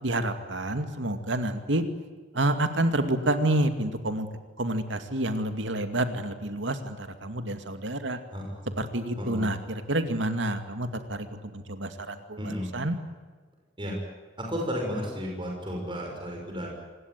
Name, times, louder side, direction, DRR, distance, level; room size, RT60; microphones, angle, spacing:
voice 1, 0.0-1.8 2.3-4.3 4.6-8.2 8.8-13.0, right 1 dB, 75° right, 8 dB, 2.4 m, -28 dB
voice 2, 8.3-8.7 9.2-9.5 12.4-12.8 13.8-14.0 14.4-16.7, equal, 25° right, 0 dB, 6.1 m, -33 dB
26.0 x 20.5 x 9.6 m, 1.4 s
head